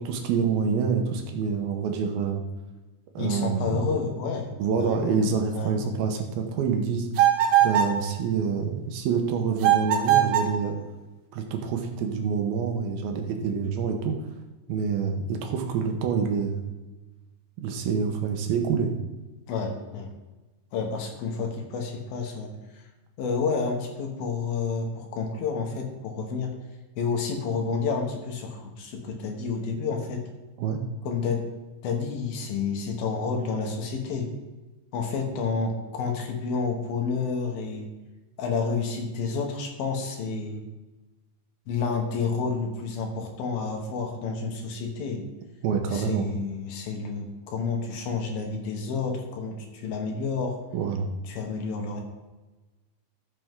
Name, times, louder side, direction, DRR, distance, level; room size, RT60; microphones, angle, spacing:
voice 1, 0.0-2.4 3.2-3.8 4.6-7.1 7.6-10.8 11.3-14.2 14.7-16.7 17.6-18.9 30.6-30.8 45.6-46.3 50.7-51.1, right 6 dB, 90° right, 3 dB, 2.9 m, -27 dB
voice 2, 3.2-5.2 5.5-5.9 19.5-20.1 20.7-22.8 23.2-26.6 27.0-30.2 31.0-31.4 31.8-34.3 34.9-37.9 38.4-40.6 41.7-45.2 45.9-50.6 51.3-52.0, left 5 dB, 80° left, 2 dB, 3.2 m, -30 dB
sound 1, 7.2-8.0 9.6-10.6, right 11 dB, 70° right, 2.5 m, -20 dB
13.5 x 6.9 x 3.7 m, 1.2 s
omnidirectional pair, 4.2 m